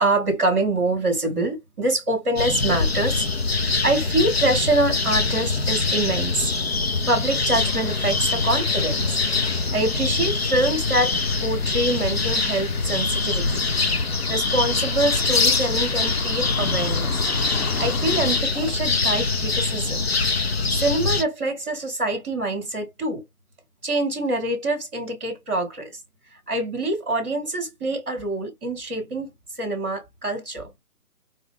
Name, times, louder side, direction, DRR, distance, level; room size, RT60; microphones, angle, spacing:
voice 1, 0.0-3.3 3.8-6.5 7.1-9.2 9.7-13.6 14.3-17.2 17.8-20.0 20.7-23.2 23.8-26.0 26.5-29.3 29.6-30.7, right 2 dB, 5° right, 1.0 m, -25 dB
sound 1, 2.4-21.2, left 3 dB, 45° left, 0.5 m, -24 dB
sound 2, 6.7-18.4, left 5 dB, 70° left, 1.0 m, -37 dB
4.6 x 2.2 x 3.5 m
hypercardioid pair, 175°, 45 cm